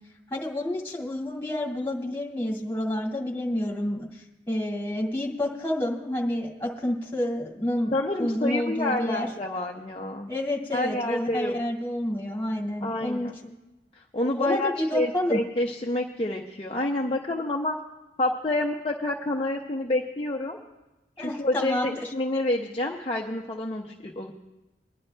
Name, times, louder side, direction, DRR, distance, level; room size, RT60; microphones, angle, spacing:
voice 1, 0.3-7.9 8.2-9.3 10.3-13.3 14.4-15.4 21.2-21.9, left 1 dB, 10° left, -2 dB, 2.1 m, -29 dB
voice 2, 7.9-10.3 10.7-11.6 12.8-13.3 13.9-17.8 18.2-20.6 21.2-24.3, left 1 dB, 30° left, -1 dB, 0.6 m, -28 dB
24.5 x 11.0 x 2.2 m, 1.0 s
head